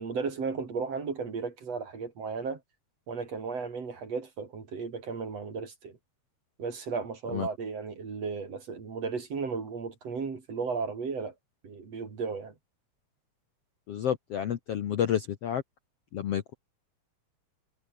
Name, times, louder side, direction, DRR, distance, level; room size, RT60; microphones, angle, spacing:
voice 1, 0.0-2.6 3.1-6.0 6.6-11.3 11.6-12.5, right 5 dB, 45° right, 4.3 m, -35 dB
voice 2, 13.9-15.6 16.1-16.5, left 9 dB, 60° left, 1.8 m, -30 dB
omnidirectional pair, 4.1 m